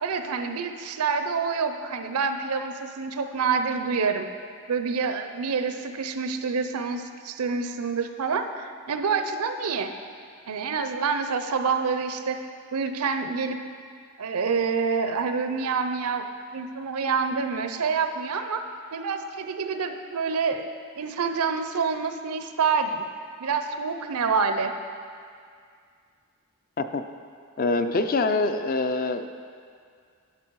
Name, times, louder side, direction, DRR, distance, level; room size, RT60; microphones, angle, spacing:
voice 1, 0.0-4.3 4.7-9.9 10.5-12.4 12.7-13.6 14.2-16.2 16.5-18.6 18.9-20.7 21.0-23.1 23.4-24.7, right 5 dB, 90° right, 8 dB, 0.6 m, -27 dB
voice 2, 27.6-29.3, left 3 dB, 40° left, 8 dB, 0.4 m, -25 dB
11.0 x 6.0 x 4.6 m, 2.2 s
head